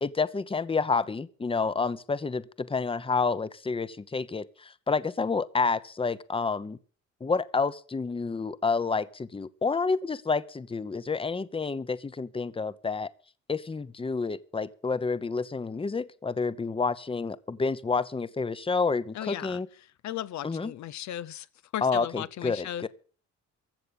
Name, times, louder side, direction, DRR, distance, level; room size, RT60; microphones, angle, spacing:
voice 1, 0.0-6.8 7.2-13.1 13.5-19.7 20.4-20.7 21.8-22.9, left 4 dB, 20° left, 0.8 m, -29 dB
voice 2, 19.1-19.6 20.0-21.5 21.7-22.9, left 12 dB, 70° left, 0.6 m, -36 dB
15.0 x 6.7 x 9.0 m
cardioid pair, 90°, 30 cm